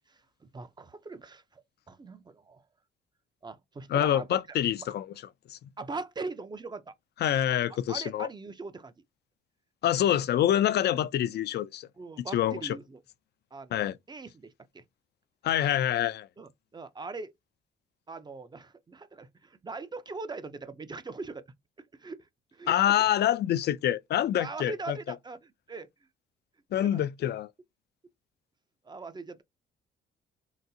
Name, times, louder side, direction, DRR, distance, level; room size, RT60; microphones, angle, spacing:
voice 1, 0.1-2.6 3.4-4.3 4.8-4.9 5.8-6.9 7.9-8.9 9.9-10.0 12.0-13.0 13.5-14.8 16.4-17.3 18.1-21.4 22.0-23.1 24.4-25.9 26.9-27.0 28.8-29.4, right 3 dB, 20° right, 0.5 m, -41 dB
voice 2, 3.9-5.1 5.5-5.6 7.2-8.3 9.8-11.9 12.3-12.8 13.7-13.9 15.4-16.3 22.7-25.0 26.7-27.5, left 11 dB, 60° left, 0.4 m, -26 dB
3.9 x 2.0 x 2.6 m
cardioid pair, 90°, 20 cm